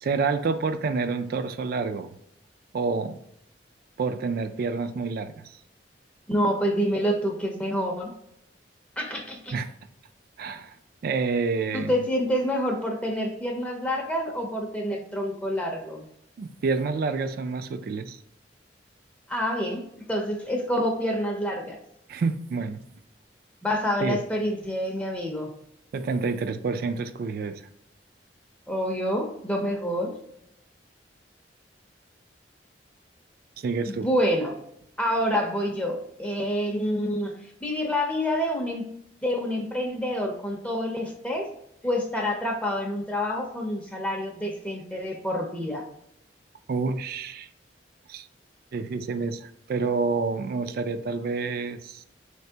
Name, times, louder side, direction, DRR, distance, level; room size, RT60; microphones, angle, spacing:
voice 1, 0.0-2.1 2.7-3.2 4.0-5.4 9.5-9.7 10.4-10.8 11.0-11.9 16.4-18.2 22.1-22.8 24.0-24.2 25.9-27.6 33.6-34.1 46.7-47.5 48.1-48.3 48.7-52.0, right 4 dB, 55° right, 11 dB, 0.3 m, -28 dB
voice 2, 6.3-8.1 9.0-9.5 11.7-16.0 19.3-21.8 23.6-25.5 28.7-30.1 33.9-34.6 35.0-37.3 37.6-38.8 39.2-41.5 41.8-45.8, equal, 5° left, 1 dB, 0.5 m, -27 dB
4.0 x 3.3 x 2.7 m, 0.78 s
head